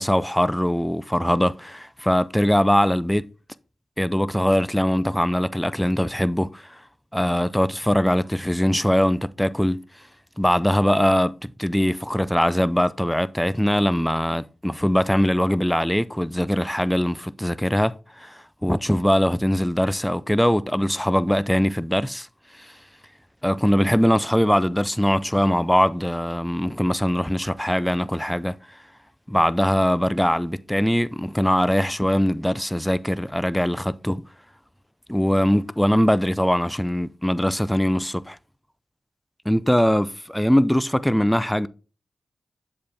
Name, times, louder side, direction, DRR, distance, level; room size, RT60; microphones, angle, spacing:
voice 1, 0.0-3.3 4.0-6.8 7.1-9.8 10.4-22.3 22.5-22.8 23.4-28.8 29.3-34.2 35.1-38.4 39.5-41.7, equal, 5° left, 0.5 m, -21 dB
7.5 x 4.4 x 3.4 m
cardioid pair, 50°, 0 cm